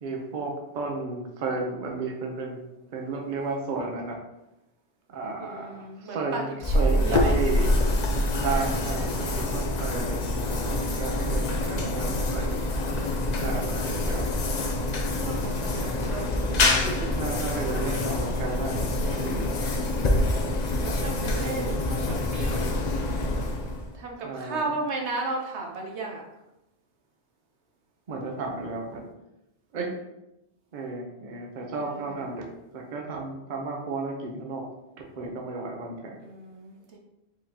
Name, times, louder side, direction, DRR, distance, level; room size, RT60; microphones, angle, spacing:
voice 1, 0.0-2.6 2.9-4.2 5.1-6.5 6.7-7.7 8.4-12.6 13.4-14.3 15.2-15.6 17.1-19.5 21.3-21.7 24.2-24.7 28.1-29.1 29.7-30.0 30.7-34.7 35.0-36.2, right 3 dB, 50° right, 1 dB, 0.8 m, -33 dB
voice 2, 5.4-7.3 13.1-14.0 14.7-17.1 19.0-20.4 20.7-22.8 23.9-26.2 31.7-32.1 36.2-37.0, right 3 dB, 85° right, 1 dB, 1.1 m, -36 dB
sound 1, 6.6-24.0, left 1 dB, 50° left, 0.6 m, -26 dB
4.9 x 3.7 x 2.8 m, 0.90 s
omnidirectional pair, 1.1 m